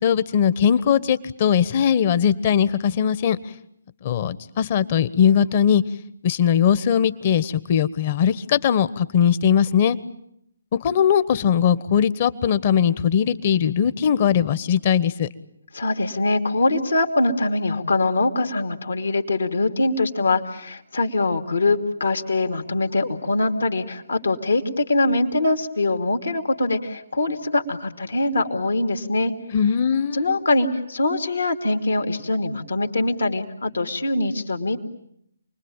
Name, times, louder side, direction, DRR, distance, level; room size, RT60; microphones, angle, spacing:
voice 1, 0.0-3.4 4.0-5.8 6.2-10.0 10.8-15.3 29.5-30.3, left 8 dB, 40° left, 15 dB, 1.2 m, -20 dB
voice 2, 15.7-29.3 30.1-34.8, left 2 dB, 75° left, 5 dB, 2.9 m, -23 dB
28.5 x 21.0 x 9.1 m, 0.77 s
figure-of-eight pair, 140°, 0 cm